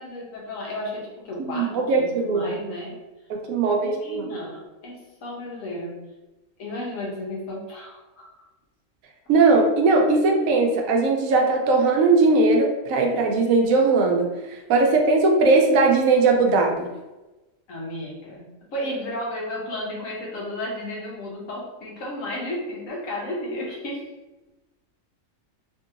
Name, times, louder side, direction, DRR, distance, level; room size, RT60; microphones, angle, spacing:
voice 1, 0.0-2.9 3.8-5.9 6.6-8.3 17.7-18.4 18.7-24.0, left 1 dB, 80° left, -3 dB, 1.3 m, -33 dB
voice 2, 1.4-2.6 3.3-4.2 9.3-14.3 14.7-16.9, right 3 dB, 90° right, 2 dB, 1.0 m, -19 dB
3.1 x 2.7 x 2.5 m, 1.1 s
omnidirectional pair, 1.4 m